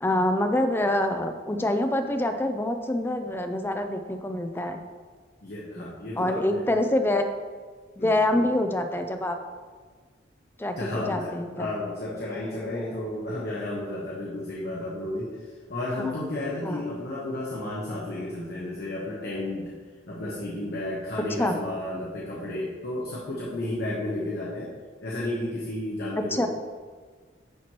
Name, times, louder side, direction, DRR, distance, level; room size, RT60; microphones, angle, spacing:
voice 1, 0.0-4.8 5.8-7.3 8.0-9.4 10.6-11.7 16.6-16.8 21.4-21.5 26.3-26.5, left 1 dB, 10° left, 6 dB, 0.4 m, -26 dB
voice 2, 5.4-6.7 8.0-8.4 10.8-19.7 20.1-24.7 25.0-26.5, left 1 dB, 55° left, -5 dB, 1.0 m, -32 dB
10.0 x 4.4 x 3.1 m, 1.5 s
head